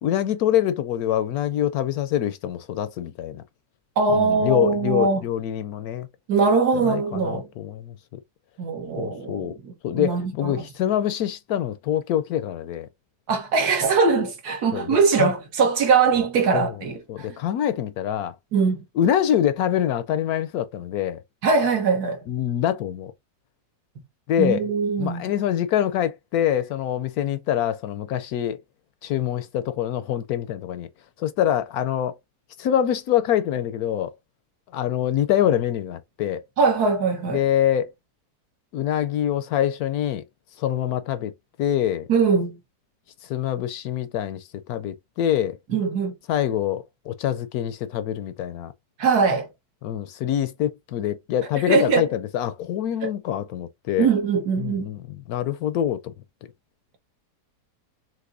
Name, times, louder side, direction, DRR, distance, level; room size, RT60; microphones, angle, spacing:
voice 1, 0.0-3.4 4.1-6.1 6.7-8.2 9.0-9.5 9.8-12.9 14.7-15.3 16.5-16.8 17.1-18.4 19.0-21.2 22.3-23.1 24.3-24.7 25.0-28.6 29.0-30.9 31.2-32.2 32.6-34.1 34.7-36.4 37.3-37.9 38.7-40.2 40.6-41.3 41.6-42.1 43.2-45.6 46.3-48.7 49.8-54.1 54.6-56.1, left 11 dB, 70° left, 1.0 m, -25 dB
voice 2, 4.0-5.2 6.3-7.5 8.6-10.6 13.3-17.3 18.5-18.8 21.4-22.2 24.4-25.2 36.6-37.4 42.1-42.6 45.7-46.1 49.0-49.5 51.7-52.1 53.0-53.1 54.0-54.9, right 4 dB, 70° right, 1.7 m, -21 dB
6.0 x 2.8 x 2.5 m
omnidirectional pair, 1.8 m